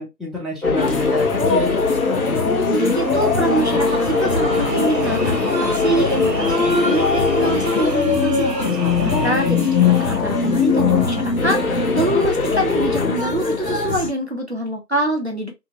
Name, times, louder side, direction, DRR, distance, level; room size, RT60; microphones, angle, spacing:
voice 1, 0.0-1.7 8.7-9.4, left 2 dB, ahead, 0.6 m, -29 dB
sound 1, 0.6-13.9, left 5 dB, 60° left, 0.8 m, -22 dB
sound 2, 0.8-14.1, left 3 dB, 80° left, 1.0 m, -24 dB
voice 2, 2.5-8.5 9.0-15.5, right 1 dB, 45° right, 0.6 m, -24 dB
sound 3, 2.9-10.2, right 6 dB, 85° right, 0.6 m, -32 dB
2.8 x 2.7 x 2.8 m
figure-of-eight pair, 160°, 49 cm